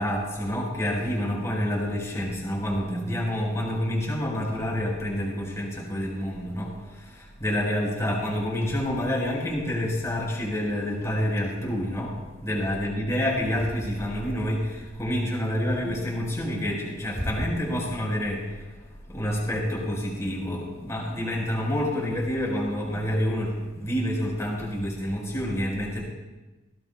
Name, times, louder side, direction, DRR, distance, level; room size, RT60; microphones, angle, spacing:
voice 1, 0.0-26.0, equal, 15° left, -3 dB, 4.5 m, -28 dB
19.5 x 17.0 x 2.3 m, 1.1 s
head